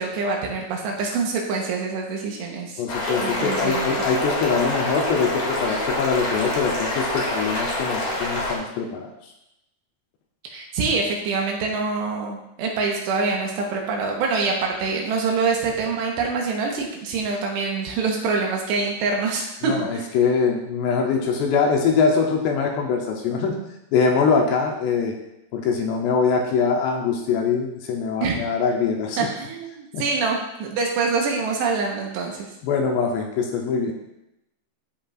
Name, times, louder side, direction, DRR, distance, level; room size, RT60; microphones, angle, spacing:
voice 1, 0.0-2.8 3.2-3.9 10.5-20.1 28.2-28.4 29.2-32.5, right 4 dB, 75° right, 0 dB, 3.0 m, -25 dB
voice 2, 2.8-9.1 19.6-23.6 23.9-25.2 25.5-29.3 29.9-30.0 32.6-33.9, left 5 dB, 80° left, 1 dB, 2.7 m, -23 dB
sound 1, 2.9-8.6, left 1 dB, 55° left, 2.7 m, -26 dB
13.5 x 5.2 x 2.4 m, 0.87 s
omnidirectional pair, 5.3 m